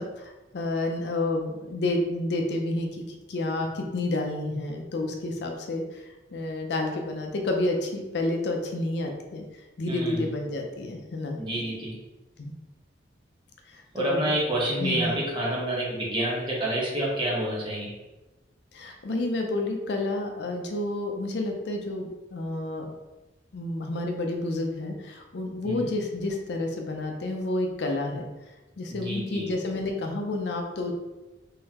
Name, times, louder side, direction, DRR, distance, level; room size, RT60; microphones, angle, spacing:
voice 1, 0.0-9.4 9.8-11.4 12.4-12.5 13.7-14.3 14.8-15.2 18.7-22.9 23.5-28.3 28.8-30.9, left 2 dB, 65° left, 3 dB, 0.5 m, -30 dB
voice 2, 9.9-10.2 11.3-11.9 13.9-17.9 25.6-25.8 28.9-29.5, right 1 dB, 25° right, -5 dB, 1.1 m, -28 dB
3.8 x 3.1 x 2.8 m, 1.1 s
head